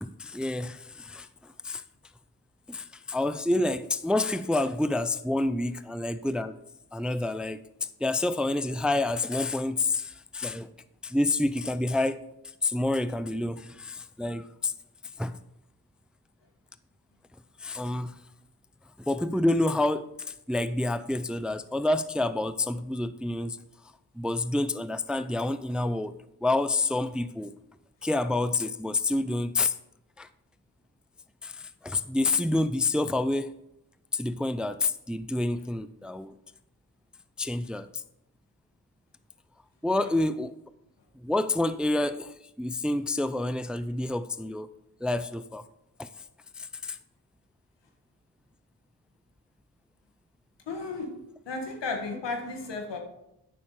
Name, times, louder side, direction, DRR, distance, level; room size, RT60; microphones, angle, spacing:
voice 1, 0.0-1.8 2.7-6.6 6.9-7.6 8.0-10.7 11.0-12.2 12.6-14.7 15.2-15.4 17.6-18.2 19.0-23.6 24.2-26.1 26.4-27.5 28.0-29.7 30.2-30.3 31.4-33.5 34.1-36.4 37.4-38.0 39.8-40.6 41.2-44.7 45.0-45.6 46.0-46.1 46.6-47.0, left 2 dB, ahead, 13 dB, 0.4 m, -28 dB
voice 2, 50.7-51.1 51.5-53.0, left 3 dB, 90° left, 3 dB, 1.7 m, -34 dB
9.2 x 6.4 x 4.8 m, 0.85 s
cardioid pair, 55°, 41 cm